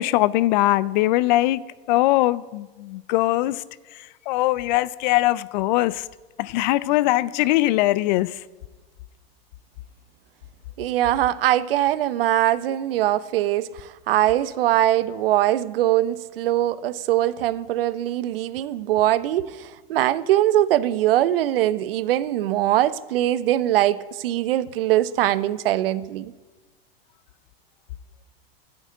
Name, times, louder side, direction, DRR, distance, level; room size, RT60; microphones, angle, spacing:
voice 1, 0.0-1.6 1.9-3.6 4.3-6.0 6.4-8.4, left 17 dB, 50° left, 0.4 m, -21 dB
voice 2, 10.8-26.3, right 13 dB, 65° right, 0.6 m, -22 dB
11.0 x 5.9 x 8.5 m
hypercardioid pair, 105°, 30 cm